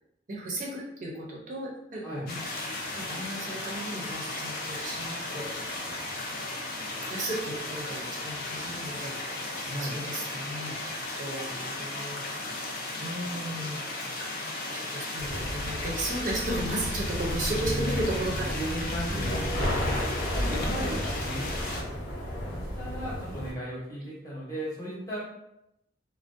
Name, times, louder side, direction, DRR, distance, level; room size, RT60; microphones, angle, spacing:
voice 1, 0.3-2.4 2.9-5.5 6.4-6.5 7.1-10.7 11.2-12.2 13.0-13.8 14.7-18.5 19.1-19.4, right 1 dB, 45° right, -3 dB, 0.5 m, -35 dB
sound 1, 2.3-21.8, left 2 dB, 50° left, 0.4 m, -36 dB
voice 2, 9.6-10.0 17.4-18.0 18.3-21.5 22.8-25.2, equal, 20° left, -7 dB, 0.8 m, -36 dB
sound 2, 15.2-23.5, equal, 85° left, 0.8 m, -32 dB
2.4 x 2.0 x 2.5 m, 0.84 s
head